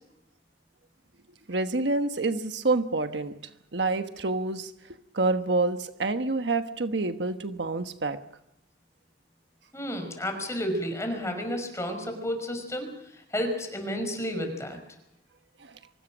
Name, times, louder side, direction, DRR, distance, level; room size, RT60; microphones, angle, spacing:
voice 1, 1.5-3.3 3.7-4.7 5.1-8.2, right 3 dB, 85° right, 8 dB, 1.3 m, -27 dB
voice 2, 9.7-12.9 13.1-14.8, equal, 15° left, 6 dB, 5.6 m, -31 dB
24.5 x 19.5 x 6.3 m, 0.85 s
head